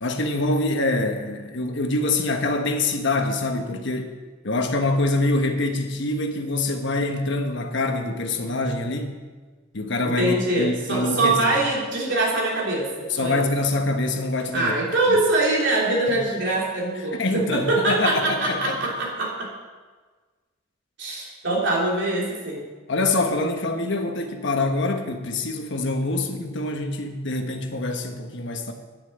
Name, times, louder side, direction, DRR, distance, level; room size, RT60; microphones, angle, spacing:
voice 1, 0.0-4.1 4.4-9.2 9.7-11.3 13.1-14.7 15.1-15.2 16.1-16.2 17.1-18.9 22.9-28.7, left 2 dB, 65° left, 4 dB, 1.3 m, -25 dB
voice 2, 10.0-13.5 14.5-19.5 21.0-22.6, right 2 dB, 65° right, -4 dB, 3.4 m, -23 dB
10.5 x 6.9 x 8.8 m, 1.4 s
head